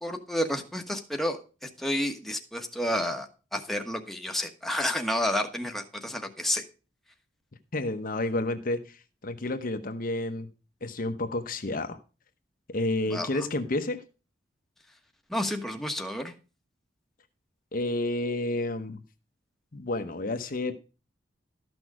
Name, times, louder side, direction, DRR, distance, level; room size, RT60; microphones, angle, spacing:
voice 1, 0.0-6.6 13.1-13.3 15.3-16.3, left 1 dB, ahead, 3 dB, 1.2 m, -30 dB
voice 2, 7.7-9.0 9.2-10.5 10.8-12.0 12.7-14.0 17.7-19.0 19.7-20.7, left 2 dB, 50° left, 7 dB, 0.9 m, -30 dB
13.0 x 6.2 x 4.8 m, 0.33 s
head